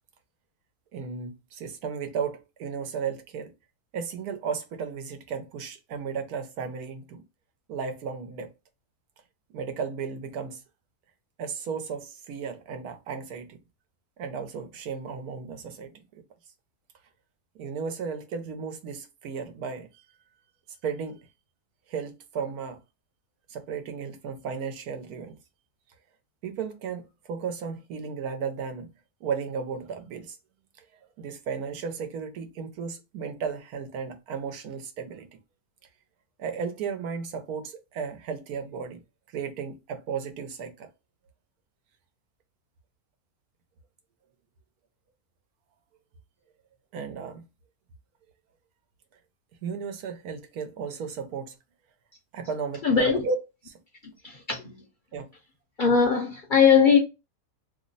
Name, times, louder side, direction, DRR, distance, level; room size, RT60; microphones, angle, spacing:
voice 1, 0.9-3.5 3.9-7.2 7.7-8.5 9.5-10.6 11.4-13.6 14.2-15.9 17.5-19.9 20.8-21.2 21.9-22.8 23.5-25.4 26.4-28.9 29.2-30.4 30.8-30.9 31.2-35.3 36.4-39.0 39.3-40.9 46.9-47.5 49.6-51.5 52.3-53.4 53.7-53.8 55.1-55.3, right 6 dB, 90° right, 1.2 m, -34 dB
voice 2, 52.8-53.3 54.0-54.8 55.8-57.0, left 6 dB, 50° left, 0.6 m, -21 dB
3.0 x 2.0 x 3.8 m
omnidirectional pair, 1.5 m